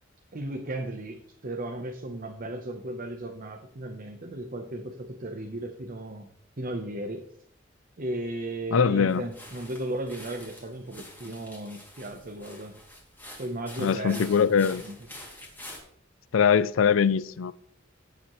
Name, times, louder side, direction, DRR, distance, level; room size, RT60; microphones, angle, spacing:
voice 1, 0.3-6.3 6.6-7.2 8.0-12.8 13.4-15.0, right 1 dB, 45° right, 3 dB, 0.9 m, -35 dB
voice 2, 8.7-9.2 13.8-14.8 16.3-17.5, left 7 dB, 85° left, 18 dB, 0.4 m, -22 dB
sound 1, 9.1-15.8, left 1 dB, 10° left, 2.6 m, -47 dB
16.0 x 7.1 x 3.1 m, 0.67 s
head